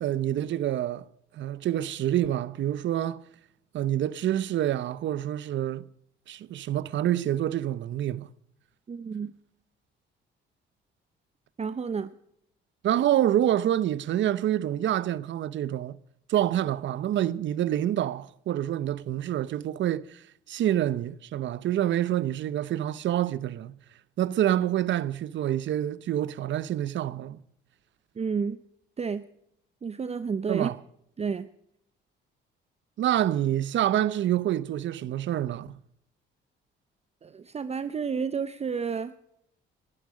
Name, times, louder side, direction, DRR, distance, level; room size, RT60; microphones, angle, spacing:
voice 1, 0.0-1.0 1.4-3.2 3.7-5.8 6.3-8.3 12.8-16.0 16.3-20.2 20.5-23.8 24.2-27.4 30.5-30.8 33.0-35.8, right 12 dB, 70° right, 0.8 m, -27 dB
voice 2, 8.9-9.3 11.6-12.1 28.2-28.6 29.0-29.2 29.8-30.7 31.2-31.5 37.2-39.1, right 6 dB, 30° right, 0.7 m, -30 dB
18.5 x 12.5 x 5.0 m
cardioid pair, 90°, 20 cm